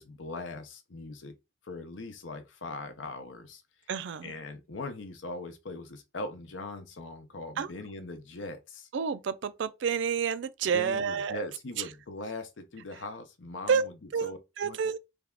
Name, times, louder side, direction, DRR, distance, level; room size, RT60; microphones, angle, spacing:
voice 1, 0.0-1.4 1.6-3.6 4.2-8.9 10.7-13.9 14.2-14.4 14.6-14.8, left 2 dB, 65° left, 0.7 m, -40 dB
voice 2, 3.9-4.3 7.6-7.7 8.9-11.4 11.8-11.9 13.7-15.0, right 6 dB, 60° right, 0.3 m, -29 dB
3.4 x 2.3 x 3.5 m
head